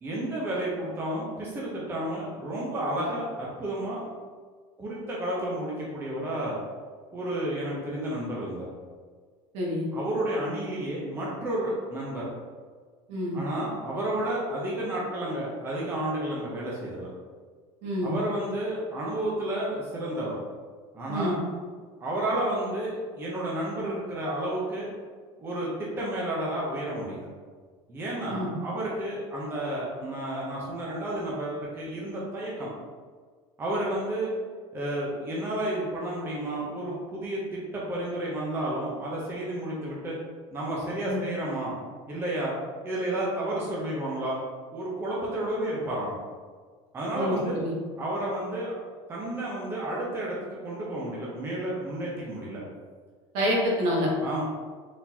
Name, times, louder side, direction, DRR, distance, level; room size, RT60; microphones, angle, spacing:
voice 1, 0.0-4.0 4.8-6.6 7.1-8.7 9.9-12.3 13.3-17.1 18.0-20.4 20.9-21.4 22.0-24.9 25.4-27.3 27.9-32.7 33.6-34.3 34.7-40.1 40.5-41.7 42.1-42.5 42.8-44.4 44.7-46.2 46.9-47.6 48.0-48.7 49.1-50.4 50.6-52.6 54.2-54.4, right 1 dB, 20° right, -5 dB, 0.7 m, -31 dB
voice 2, 9.5-9.9 13.1-13.4 17.8-18.1 21.1-21.4 28.3-28.6 41.1-41.2 47.1-47.7 53.3-54.1, equal, 60° right, -3 dB, 1.3 m, -27 dB
4.2 x 4.1 x 2.8 m, 1.5 s
cardioid pair, 170°, 13 cm